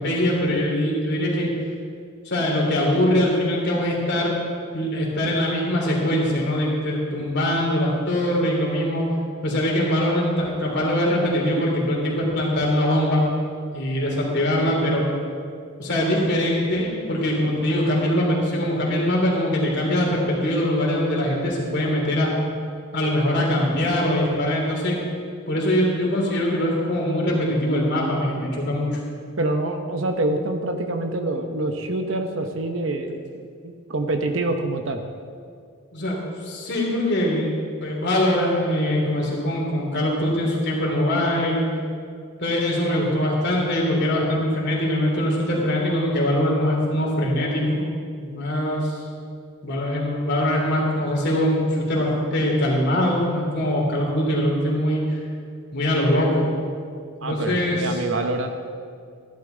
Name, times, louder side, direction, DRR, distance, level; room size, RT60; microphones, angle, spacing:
voice 1, 0.0-1.5 2.2-4.4 4.7-9.1 9.4-13.2 13.7-15.1 15.8-22.3 22.9-25.0 25.5-29.0 35.9-41.7 42.4-47.8 48.2-49.0 49.6-55.2 55.7-56.5 57.2-58.0, left 1 dB, 50° left, -2 dB, 2.9 m, -22 dB
voice 2, 29.4-35.0 57.2-58.5, right 2 dB, 60° right, 6 dB, 0.9 m, -26 dB
15.0 x 11.5 x 3.9 m, 2.2 s
head